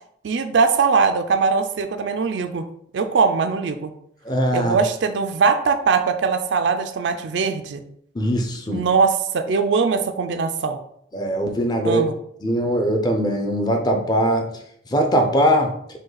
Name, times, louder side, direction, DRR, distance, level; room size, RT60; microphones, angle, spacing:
voice 1, 0.2-2.7 2.9-3.9 4.5-7.8 8.7-10.8 11.8-12.1, right 5 dB, 65° right, 9 dB, 0.4 m, -21 dB
voice 2, 4.2-4.8 8.1-8.8 11.1-12.1 12.4-14.5 14.9-15.7, equal, 20° left, 4 dB, 0.5 m, -20 dB
5.1 x 2.2 x 3.9 m, 0.70 s
head